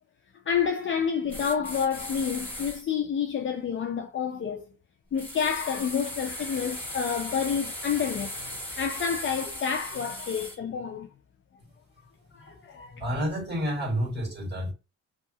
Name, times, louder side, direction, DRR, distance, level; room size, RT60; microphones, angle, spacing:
voice 1, 0.5-4.7 5.1-8.3 8.8-11.1 12.3-13.0, left 7 dB, 40° left, 0.5 m, -29 dB
sound 1, 1.3-2.8 5.2-10.6, left 1 dB, 5° left, 1.7 m, -37 dB
voice 2, 13.0-14.7, equal, 35° right, 1.6 m, -29 dB
2.8 x 2.4 x 2.7 m
cardioid pair, 90°, 30 cm